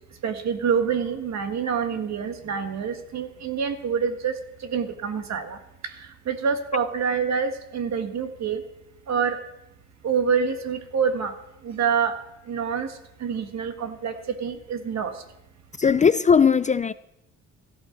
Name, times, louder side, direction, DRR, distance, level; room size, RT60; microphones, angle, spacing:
voice 1, 0.2-4.3 4.7-5.6 6.3-8.6 9.1-9.4 10.0-11.3 11.6-12.1 12.5-12.9 13.2-14.1 14.4-15.1, right 6 dB, 60° right, 1.8 m, -26 dB
voice 2, 15.8-16.9, left 6 dB, 25° left, 0.4 m, -18 dB
16.0 x 13.5 x 4.0 m
cardioid pair, 90°, 30 cm